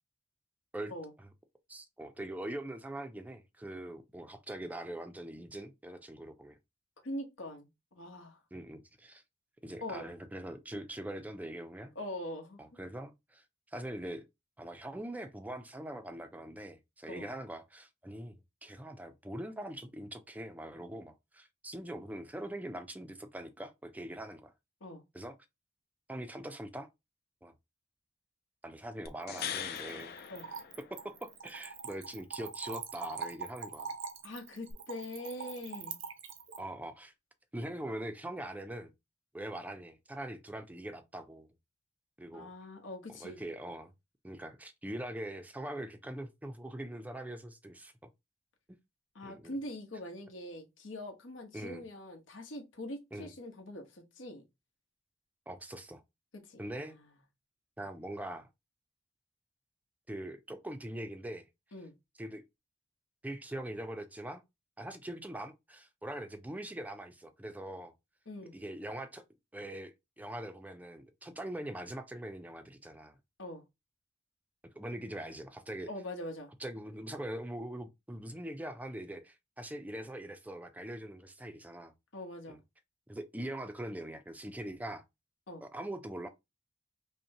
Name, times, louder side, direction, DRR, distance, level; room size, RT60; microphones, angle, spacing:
voice 1, 1.7-6.6 8.5-9.2 9.6-11.9 12.6-14.2 14.6-24.5 25.1-25.3 26.1-26.9 27.4-27.5 28.6-30.1 30.9-33.9 36.6-37.1 37.5-38.9 39.3-41.5 42.2-42.5 43.2-43.9 44.2-48.1 49.2-49.5 51.5-51.8 53.1-53.3 55.5-56.0 56.6-57.0 57.8-58.5 60.1-61.5 62.2-62.4 63.2-64.4 64.8-67.9 68.5-69.2 69.5-73.2 74.8-75.9 76.6-81.9 82.5-82.6 83.1-85.0 85.6-86.3, right 1 dB, 10° right, 0.4 m, -42 dB
voice 2, 7.0-8.4 9.8-10.1 11.9-12.6 17.1-17.3 24.8-25.0 30.3-30.5 34.2-36.0 42.3-43.4 49.1-54.4 56.4-57.0 61.7-61.9 68.3-68.6 73.4-73.6 75.9-76.5 82.1-82.6 85.5-85.6, left 1 dB, 80° left, 1.2 m, -43 dB
sound 1, 29.1-31.3 34.7-34.8, left 9 dB, 50° left, 0.4 m, -41 dB
Splash splatter / Trickle dribble, 29.2-36.6, right 6 dB, 70° right, 0.7 m, -43 dB
5.3 x 2.2 x 2.8 m
head